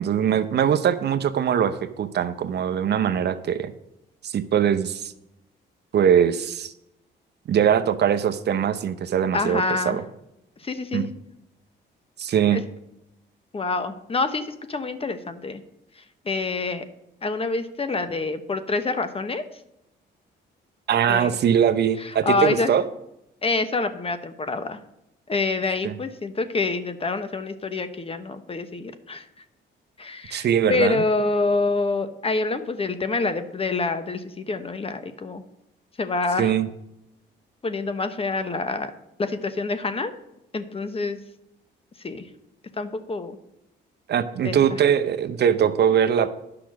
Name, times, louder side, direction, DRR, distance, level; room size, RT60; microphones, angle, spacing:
voice 1, 0.0-3.7 4.2-5.1 5.9-6.7 7.5-10.0 10.9-11.1 12.2-12.6 20.9-22.8 25.8-25.9 30.3-31.0 36.4-36.7 44.1-46.3, right 8 dB, 55° right, 10 dB, 0.7 m, -21 dB
voice 2, 9.3-10.0 10.6-11.1 12.5-12.6 13.5-15.6 16.2-16.8 17.2-19.4 21.1-21.3 22.0-22.7 23.4-24.8 25.3-29.2 30.0-35.4 36.0-36.5 37.6-38.9 39.2-40.1 40.5-41.2 42.0-42.2 42.8-43.4 44.4-44.6, left 3 dB, 30° left, 10 dB, 0.9 m, -26 dB
10.0 x 5.9 x 6.2 m, 0.87 s
cardioid pair, 90°, 20 cm